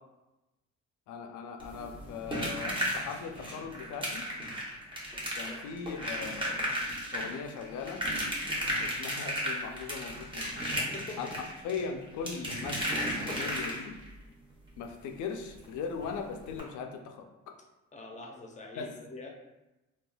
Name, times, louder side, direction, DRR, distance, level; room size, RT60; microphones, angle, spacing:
voice 1, 1.1-4.3 5.4-6.8 7.1-8.0 8.8-10.7 11.2-11.3 11.6-14.0 14.8-17.5 18.8-18.9, left 5 dB, 80° left, 4 dB, 0.5 m, -39 dB
sound 1, 1.6-14.1 15.6-15.7 16.0-16.1 16.5-16.6, equal, 15° right, 0.8 m, -34 dB
voice 2, 10.8-11.2 17.9-19.3, left 2 dB, 25° left, 1 dB, 0.6 m, -44 dB
3.2 x 2.3 x 2.2 m, 1.0 s
cardioid pair, 90°, 30 cm